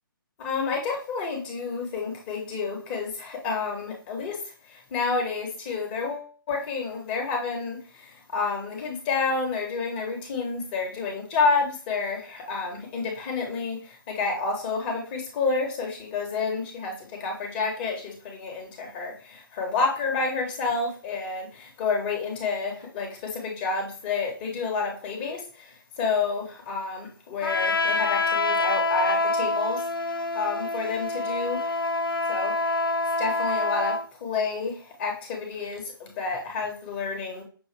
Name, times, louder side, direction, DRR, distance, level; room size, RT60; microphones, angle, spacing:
voice 1, 0.4-4.4 4.7-29.8 30.3-31.8 32.3-32.7 33.2-37.4, left 4 dB, 25° left, 1.1 m, -29 dB
Trumpet, 27.4-34.0, left 3 dB, 75° left, 0.6 m, -26 dB
6.2 x 2.5 x 3.2 m
figure-of-eight pair, 135°, 12 cm